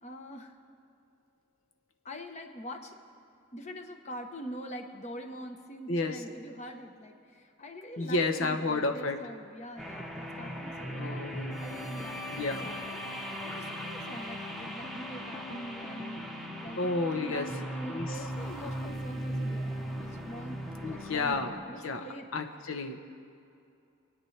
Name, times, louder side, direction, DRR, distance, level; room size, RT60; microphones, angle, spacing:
voice 1, 0.0-0.5 2.0-3.0 3.5-16.8 17.1-22.3, equal, 35° left, 4 dB, 1.0 m, -44 dB
voice 2, 8.0-9.2 10.8-11.6 12.3-12.7 16.8-17.5 17.9-18.2 20.8-22.0 22.3-23.0, left 3 dB, 80° left, 6 dB, 0.9 m, -31 dB
sound 1, 9.8-21.4, equal, ahead, 1.0 m, -38 dB
26.5 x 9.2 x 3.3 m, 2.6 s
head